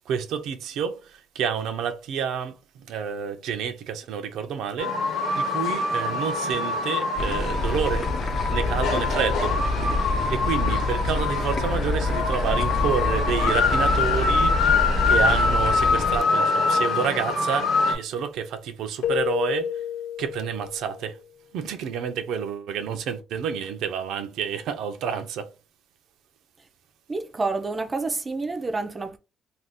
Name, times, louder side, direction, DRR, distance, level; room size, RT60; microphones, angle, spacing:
voice 1, 0.1-5.0 5.4-8.1 8.5-9.6 10.3-14.7 15.1-19.8 20.2-21.2 21.5-25.5, right 7 dB, 75° right, 0.5 m, -29 dB
sound 1, 4.8-17.9, left 4 dB, 70° left, 1.0 m, -24 dB
sound 2, 7.2-16.2, left 2 dB, 40° left, 0.6 m, -27 dB
Keyboard (musical), 19.0-21.0, left 10 dB, 90° left, 0.3 m, -30 dB
voice 2, 27.1-29.2, right 3 dB, 20° right, 0.4 m, -28 dB
2.5 x 2.3 x 3.4 m
cardioid pair, 145°, 0 cm